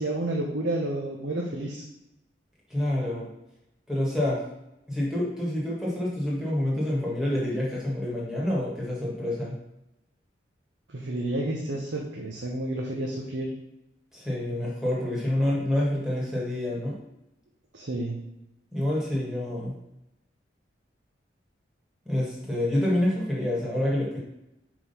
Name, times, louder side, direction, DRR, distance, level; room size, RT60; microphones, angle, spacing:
voice 1, 0.0-1.8 10.9-13.5 17.7-18.2, right 1 dB, 90° right, -1 dB, 0.8 m, -30 dB
voice 2, 2.7-3.3 3.9-4.4 4.9-9.6 14.1-17.0 18.7-19.8 22.1-24.2, left 1 dB, 5° right, -5 dB, 1.6 m, -27 dB
4.9 x 3.7 x 5.5 m, 0.89 s
head